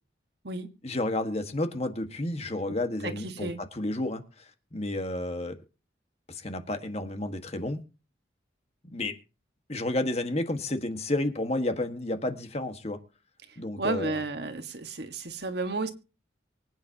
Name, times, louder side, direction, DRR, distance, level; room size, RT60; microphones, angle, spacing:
voice 1, 0.8-4.2 4.7-5.6 6.3-7.8 8.8-9.2 9.7-13.0 13.6-14.2, left 1 dB, 35° left, 1.6 m, -31 dB
voice 2, 3.0-3.6 13.5-15.9, right 2 dB, 60° right, 1.7 m, -33 dB
24.5 x 9.3 x 2.9 m
head